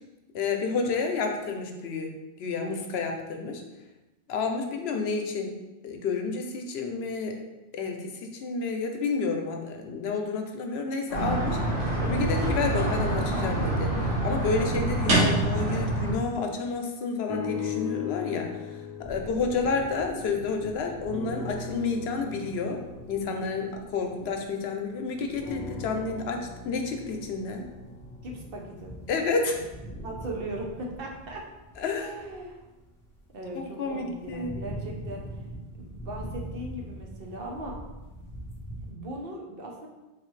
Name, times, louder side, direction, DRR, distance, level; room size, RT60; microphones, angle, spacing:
voice 1, 0.3-2.1 2.4-3.6 4.3-5.5 5.8-7.4 7.7-18.6 19.1-22.8 23.1-27.6 29.1-29.6 31.8-32.1 33.6-34.6, left 4 dB, 75° left, 3 dB, 0.8 m, -30 dB
sound 1, 11.1-16.1, right 1 dB, 85° right, 1.3 m, -26 dB
sound 2, 17.3-20.6 21.0-24.8 25.4-29.6 30.3-30.4, left 6 dB, 45° left, 0.6 m, -39 dB
sound 3, 19.0-26.6 26.9-38.9, right 1 dB, 5° left, 0.6 m, -43 dB
voice 2, 28.2-28.9 30.0-31.4 32.0-32.6 33.3-35.2 35.8-37.8 38.9-39.9, right 1 dB, 60° right, 0 dB, 0.9 m, -38 dB
4.2 x 3.2 x 3.1 m, 1.1 s
omnidirectional pair, 1.1 m